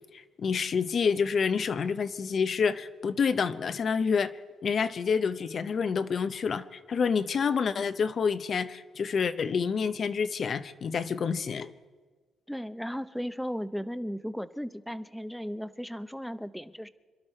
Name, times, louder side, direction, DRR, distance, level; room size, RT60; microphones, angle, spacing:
voice 1, 0.1-4.4 4.6-11.7, left 6 dB, 50° left, 12 dB, 0.7 m, -28 dB
voice 2, 12.5-16.9, equal, ahead, 13 dB, 0.7 m, -36 dB
27.0 x 12.0 x 4.4 m, 1.4 s
cardioid pair, 90°, 0 cm